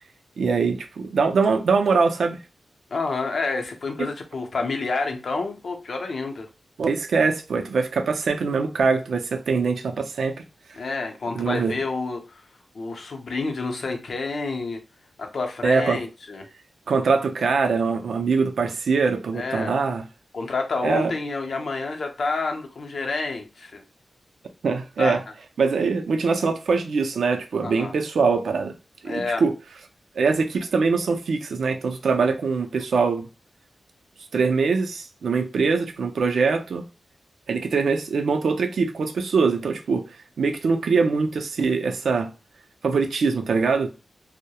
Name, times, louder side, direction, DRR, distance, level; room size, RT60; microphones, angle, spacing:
voice 1, 0.4-2.4 4.0-4.1 6.8-10.4 11.4-11.7 15.6-16.0 16.9-20.0 20.8-21.1 24.6-25.2 25.6-28.7 29.0-29.5 30.2-33.3 34.3-36.9 37.5-40.1 40.4-42.3 42.8-43.9, right 4 dB, 85° right, 0.4 m, -23 dB
voice 2, 2.9-6.5 10.8-12.4 12.7-14.8 15.2-16.5 19.3-19.7 20.3-23.8 25.0-25.2 27.6-27.9 29.1-29.4, left 3 dB, 65° left, 0.5 m, -29 dB
2.2 x 2.0 x 2.8 m
wide cardioid pair, 110°, 0 cm